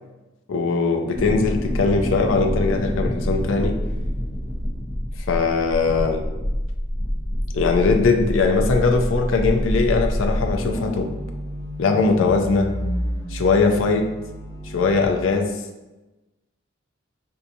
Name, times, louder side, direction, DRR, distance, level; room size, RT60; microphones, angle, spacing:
voice 1, 0.5-3.8 5.3-6.2 7.5-11.1 11.8-12.7 13.3-14.1 14.7-15.5, left 4 dB, 80° left, 3 dB, 0.4 m, -20 dB
sound 1, 1.1-15.0, equal, 20° left, 0.5 m, -27 dB
4.5 x 2.6 x 2.6 m, 1.1 s
head